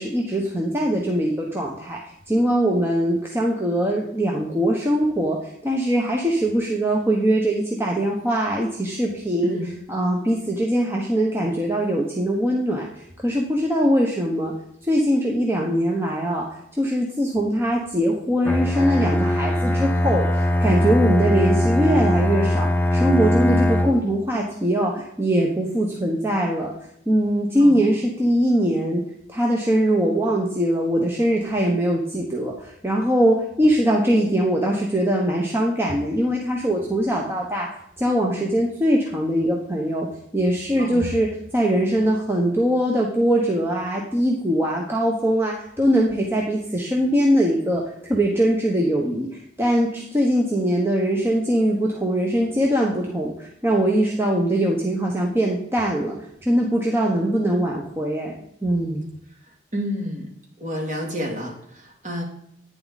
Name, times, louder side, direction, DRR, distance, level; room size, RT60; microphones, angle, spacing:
voice 1, 0.0-2.0 2.3-9.6 9.9-14.5 14.8-26.7 27.1-29.0 29.3-37.7 38.0-40.1 40.3-59.1, equal, 15° right, -1 dB, 1.1 m, -22 dB
voice 2, 9.4-9.7 27.6-28.0 40.8-41.1 59.7-60.3 60.6-62.2, equal, 40° right, -2 dB, 3.0 m, -30 dB
Bowed string instrument, 18.4-24.1, left 1 dB, 10° left, 0.5 m, -20 dB
10.5 x 9.6 x 4.1 m, 0.73 s
head